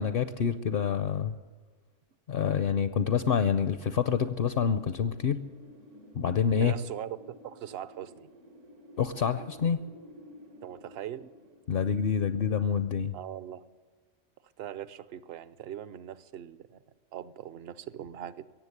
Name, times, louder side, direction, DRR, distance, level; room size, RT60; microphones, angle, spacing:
voice 1, 0.0-1.4 2.3-5.4 6.2-6.8 9.0-9.8 11.7-13.1, left 7 dB, 60° left, 11 dB, 0.7 m, -27 dB
Wind, 4.6-13.3, left 1 dB, 80° right, 1.9 m, -53 dB
voice 2, 6.6-8.3 10.6-11.3 13.1-13.6 14.6-16.8 17.1-18.5, right 11 dB, 60° right, 16 dB, 0.8 m, -40 dB
17.0 x 7.6 x 9.7 m, 1.5 s
omnidirectional pair, 1.2 m